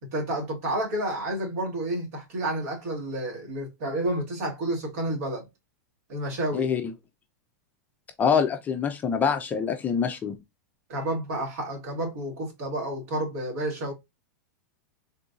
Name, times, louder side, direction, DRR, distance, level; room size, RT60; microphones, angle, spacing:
voice 1, 0.0-5.5 6.1-6.7 10.9-13.9, right 1 dB, 60° right, 1.8 m, -30 dB
voice 2, 8.2-10.3, left 6 dB, 15° left, 0.4 m, -25 dB
3.6 x 2.6 x 2.3 m
supercardioid pair, 145°, 9 cm